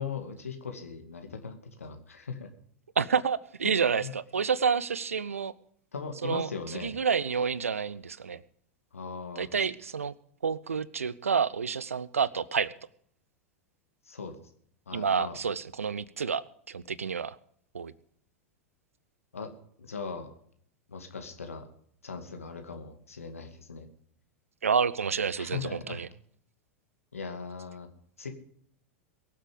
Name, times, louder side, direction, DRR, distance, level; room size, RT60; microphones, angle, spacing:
voice 1, 0.0-2.5 3.6-4.1 5.9-6.9 8.9-9.5 14.1-14.4 14.9-15.4 19.3-19.5 19.8-20.3 20.9-21.7 22.0-23.9 25.4-26.0 27.1-27.9 28.2-28.3, left 5 dB, 75° left, 5 dB, 2.3 m, -39 dB
voice 2, 3.0-5.5 6.2-8.4 9.4-10.1 10.4-12.7 14.9-16.4 16.7-17.4 17.7-17.9 24.6-26.1, right 6 dB, 75° right, 21 dB, 0.6 m, -29 dB
22.5 x 7.8 x 5.2 m, 0.63 s
figure-of-eight pair, 90°, 8 cm